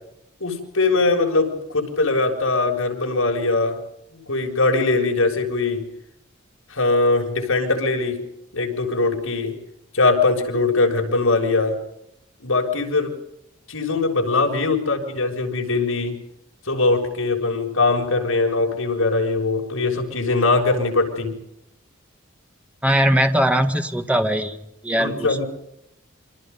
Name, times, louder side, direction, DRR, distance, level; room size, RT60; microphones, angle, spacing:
voice 1, 0.4-3.8 4.3-5.8 6.7-8.2 8.5-9.6 9.9-11.8 12.4-13.1 13.7-16.2 16.7-21.3 25.0-25.4, left 3 dB, 70° left, 2 dB, 7.0 m, -21 dB
voice 2, 22.8-24.6 24.8-25.4, equal, 5° right, 6 dB, 1.9 m, -20 dB
29.0 x 26.0 x 5.5 m, 0.81 s
head